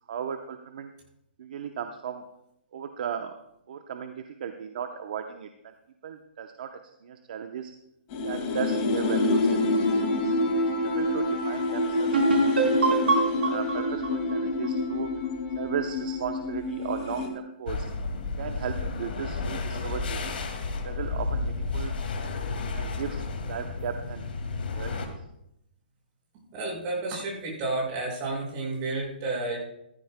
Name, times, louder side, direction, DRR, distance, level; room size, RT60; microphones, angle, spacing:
voice 1, 0.1-0.9 1.4-2.3 2.7-3.4 3.7-5.5 6.0-7.7 8.2-9.6 9.9-10.3 10.8-12.6 12.9-15.1 15.6-17.9 18.4-20.4 20.8-21.9 22.7-24.3 24.8-25.0, right 7 dB, 55° right, 6 dB, 0.8 m, -36 dB
sound 1, 8.1-17.3, left 2 dB, 30° left, 2.1 m, -27 dB
sound 2, 12.1-15.7, right 2 dB, 90° right, 4.2 m, -26 dB
sound 3, 17.7-25.1, left 4 dB, 65° left, 2.1 m, -32 dB
voice 2, 26.5-29.6, right 2 dB, 30° right, -3 dB, 5.5 m, -31 dB
15.5 x 14.5 x 2.2 m, 0.81 s
hypercardioid pair, 155°, 6 cm